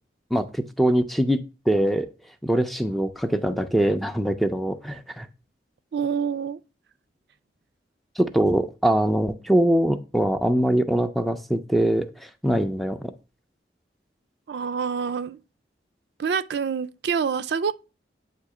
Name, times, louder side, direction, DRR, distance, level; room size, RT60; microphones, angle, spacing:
voice 1, 0.3-2.1 2.4-5.3 8.2-13.1, right 1 dB, ahead, 0.4 m, -23 dB
voice 2, 5.9-6.6 14.5-15.4 16.2-17.7, right 6 dB, 75° right, 0.4 m, -26 dB
8.3 x 2.8 x 4.8 m
head